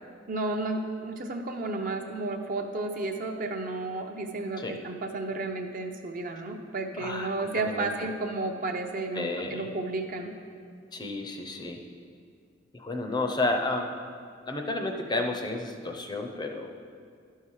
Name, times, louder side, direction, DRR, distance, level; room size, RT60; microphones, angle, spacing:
voice 1, 0.3-10.3, right 2 dB, 45° right, 4 dB, 0.7 m, -32 dB
voice 2, 7.0-7.9 9.1-9.7 10.9-11.8 12.7-13.9 14.5-16.7, left 2 dB, 20° left, 3 dB, 0.6 m, -31 dB
12.0 x 5.6 x 4.8 m, 2.2 s
head